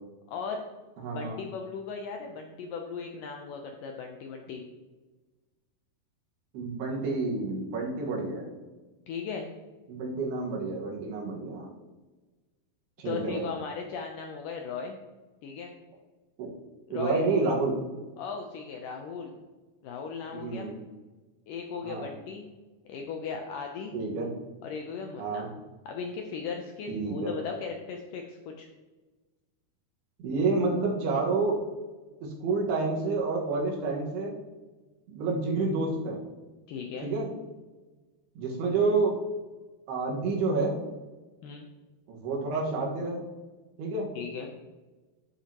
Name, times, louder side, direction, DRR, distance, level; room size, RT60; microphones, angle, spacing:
voice 1, 0.3-0.6 1.1-4.6 9.1-9.5 13.1-15.0 15.4-15.7 16.9-17.6 18.2-19.3 19.8-20.7 21.5-22.4 22.9-23.9 24.6-25.5 25.9-28.7 36.7-37.1 41.4-41.7 44.2-44.5, left 5 dB, 80° left, 3 dB, 1.9 m, -37 dB
voice 2, 1.0-1.4 6.5-8.5 9.9-11.7 13.0-13.5 16.4-16.5 16.9-17.8 20.3-20.8 21.8-22.1 23.9-24.3 25.2-25.5 26.9-27.3 30.2-31.6 32.2-34.4 35.1-36.2 37.0-37.3 38.4-39.2 39.9-40.7 42.1-43.3 43.8-44.1, right 3 dB, 80° right, -1 dB, 3.6 m, -29 dB
12.0 x 7.4 x 2.9 m, 1.2 s
omnidirectional pair, 4.6 m